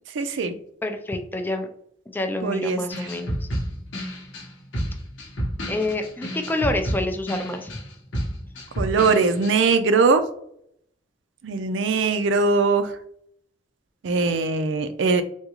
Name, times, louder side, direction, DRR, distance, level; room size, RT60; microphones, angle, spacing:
voice 1, 0.2-0.5 2.4-2.8 8.8-10.2 11.4-12.9 14.0-15.2, right 4 dB, 70° right, 10 dB, 0.4 m, -21 dB
voice 2, 0.8-1.7 2.1-3.5 5.7-7.7, left 2 dB, 10° left, 6 dB, 0.3 m, -28 dB
sound 1, 2.9-9.5, equal, 90° left, 0.9 m, -30 dB
3.6 x 2.3 x 2.9 m, 0.70 s
head